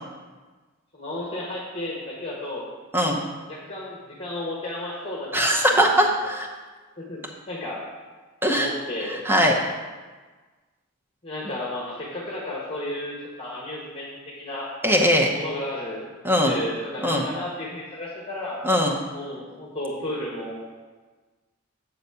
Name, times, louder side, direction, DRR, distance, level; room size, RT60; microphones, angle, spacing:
voice 1, 0.9-2.6 3.5-6.0 7.0-7.2 7.5-7.8 8.5-9.2 11.2-14.7 15.3-16.1 16.4-18.6 19.1-20.8, left 1 dB, 25° left, -4 dB, 1.1 m, -33 dB
voice 2, 5.3-6.5 8.4-8.7 9.2-9.5 14.8-15.3 16.2-16.5 17.0-17.3 18.6-18.9, equal, 10° right, 0 dB, 0.7 m, -20 dB
8.1 x 4.0 x 6.8 m, 1.4 s
head